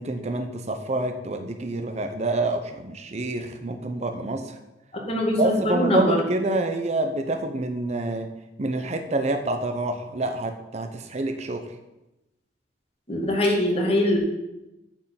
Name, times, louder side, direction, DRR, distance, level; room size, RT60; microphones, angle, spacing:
voice 1, 0.0-4.4 5.4-8.3 8.6-11.6, right 2 dB, 40° right, 6 dB, 0.7 m, -27 dB
voice 2, 4.9-6.2 13.1-14.2, left 1 dB, 35° left, -1 dB, 2.1 m, -22 dB
9.4 x 4.6 x 7.5 m, 0.97 s
head